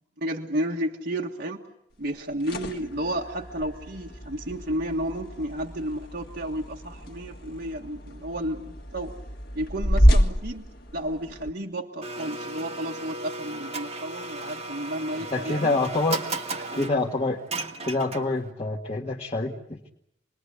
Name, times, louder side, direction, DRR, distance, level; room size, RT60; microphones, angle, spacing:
voice 1, 0.2-1.6 2.0-9.2 9.5-10.6 10.9-15.7 16.5-16.9, right 1 dB, 55° right, 0 dB, 1.6 m, -32 dB
sound 1, 2.1-11.5, equal, 55° left, 1.7 m, -28 dB
Domestic sounds home sounds, 12.0-18.5, right 3 dB, 35° right, 2.2 m, -35 dB
voice 2, 15.1-16.2 16.7-17.4 17.8-19.9, left 2 dB, 35° left, -1 dB, 1.7 m, -27 dB
28.0 x 21.0 x 8.2 m, 0.81 s
head